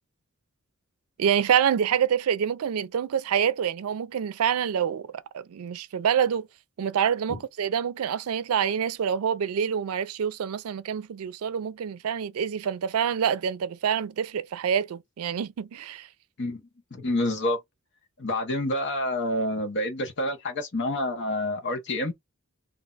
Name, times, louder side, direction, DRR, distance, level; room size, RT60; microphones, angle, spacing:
voice 1, 1.2-5.1 5.3-6.5 6.8-16.1, right 8 dB, 90° right, 0.4 m, -26 dB
voice 2, 16.9-17.6 18.2-22.1, left 1 dB, 55° left, 1.0 m, -28 dB
2.7 x 2.2 x 3.8 m
head